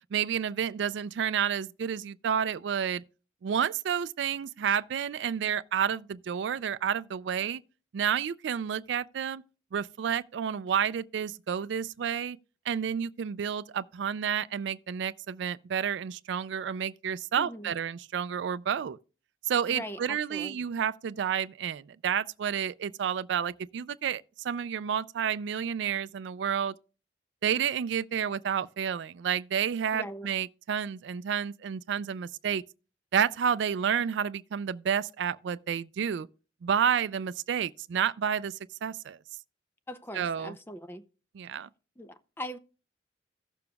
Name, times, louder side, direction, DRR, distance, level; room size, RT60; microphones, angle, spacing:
voice 1, 0.1-3.0 3.4-7.6 7.9-9.4 9.7-12.4 12.7-19.0 19.5-26.7 27.4-32.6 33.1-36.3 36.6-39.2 40.1-40.6 41.3-41.7, right 8 dB, 75° right, 0.3 m, -30 dB
voice 2, 17.4-17.7 19.7-20.5 29.9-30.3 39.9-41.0 42.0-42.6, equal, 10° left, 0.5 m, -40 dB
16.0 x 6.9 x 2.3 m
head